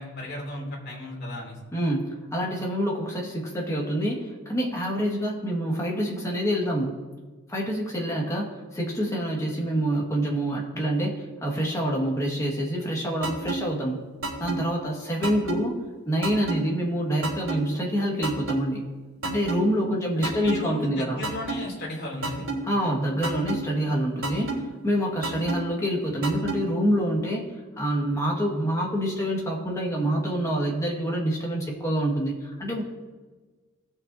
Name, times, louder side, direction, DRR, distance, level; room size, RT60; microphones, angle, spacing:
voice 1, 0.0-1.6 20.2-22.5, left 2 dB, 50° left, -2 dB, 2.8 m, -35 dB
voice 2, 1.7-7.0 7.5-14.0 14.4-18.8 19.2-21.3 22.6-27.4 27.8-32.8, equal, 15° left, -2 dB, 1.8 m, -26 dB
sound 1, 13.2-13.6 14.2-14.6 15.2-15.6 16.2-16.6 17.2-17.6 18.2-18.6 19.2-19.6 20.2-20.6 21.2-21.6 22.2-22.6 23.2-23.6 24.2-24.6 25.2-25.6 26.2-26.6, right 3 dB, 60° right, 3.4 m, -29 dB
19.0 x 6.6 x 2.8 m, 1.3 s
head